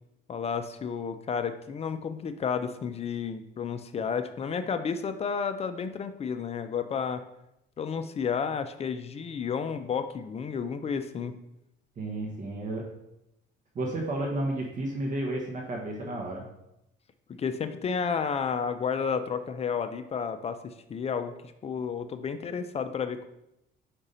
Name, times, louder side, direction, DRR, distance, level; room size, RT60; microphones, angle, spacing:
voice 1, 0.3-7.2 7.8-11.4 17.4-23.3, left 6 dB, 35° left, 9 dB, 0.5 m, -31 dB
voice 2, 12.0-12.9 13.7-16.5, right 1 dB, 40° right, 0 dB, 1.2 m, -32 dB
5.3 x 4.9 x 4.2 m, 0.84 s
cardioid pair, 125°, 19 cm